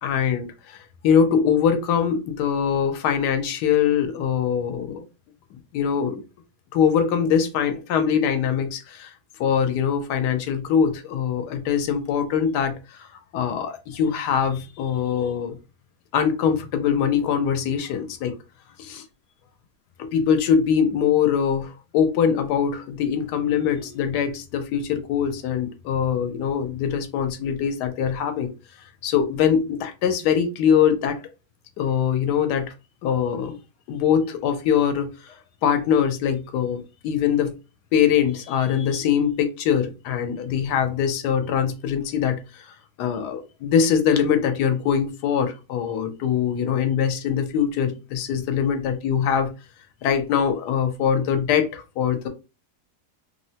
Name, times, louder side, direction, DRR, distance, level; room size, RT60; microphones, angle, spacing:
voice 1, 0.0-5.0 5.5-6.2 6.7-9.1 9.4-13.1 13.3-15.6 16.1-18.4 20.0-28.5 29.0-31.2 31.8-32.7 33.0-33.6 33.9-35.3 35.6-37.6 37.9-49.5 50.0-52.3, left 8 dB, 90° left, 1.2 m, -23 dB
3.2 x 2.0 x 2.7 m
omnidirectional pair, 1.7 m